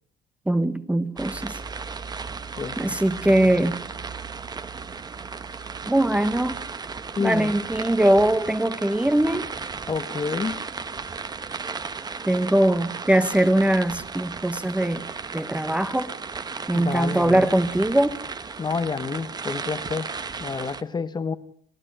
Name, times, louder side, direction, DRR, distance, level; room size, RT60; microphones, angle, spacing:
voice 1, 0.5-1.5 2.8-3.8 5.9-6.6 7.2-9.5 12.3-15.0 15.3-16.1 16.7-18.2, right 1 dB, 5° right, 11 dB, 1.1 m, -21 dB
sound 1, 1.2-20.8, right 5 dB, 20° right, 1.0 m, -35 dB
voice 2, 2.6-3.0 3.5-3.6 7.1-7.5 9.9-10.6 16.7-17.5 18.6-20.1 20.4-21.4, left 5 dB, 25° left, 11 dB, 1.1 m, -29 dB
28.5 x 14.0 x 10.0 m, 0.67 s
cardioid pair, 130°, 18 cm